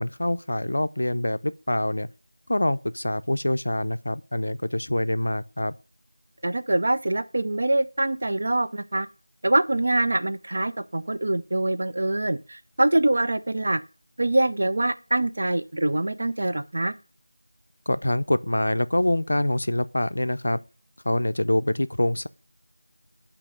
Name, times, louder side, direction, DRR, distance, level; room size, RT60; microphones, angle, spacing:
voice 1, 0.0-2.1 2.5-5.7 17.9-20.6 21.0-22.3, left 1 dB, 65° left, 0.4 m, -25 dB
voice 2, 6.4-9.1 9.4-13.8 14.2-16.9, right 2 dB, 50° right, 0.5 m, -24 dB
8.1 x 2.9 x 5.1 m
figure-of-eight pair, 170°, 0 cm